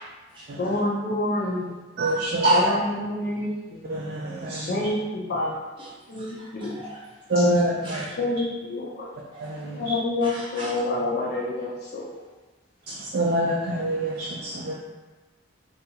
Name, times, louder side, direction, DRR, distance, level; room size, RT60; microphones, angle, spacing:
voice 1, 0.6-1.8 2.5-4.0 4.7-5.6 6.1-6.8 7.4-7.5 8.2-9.1 9.8-12.2, left 2 dB, 50° left, -5 dB, 0.4 m, -28 dB
voice 2, 2.0-2.7 3.9-4.9 7.3-8.1 9.4-10.0 12.9-14.8, right 1 dB, 50° right, -4 dB, 0.3 m, -25 dB
voice 3, 5.8-7.3 7.8-8.2 9.3-9.6 10.2-10.8 12.8-13.0, right 1 dB, 25° right, -7 dB, 0.7 m, -42 dB
2.7 x 2.2 x 2.7 m, 1.2 s
head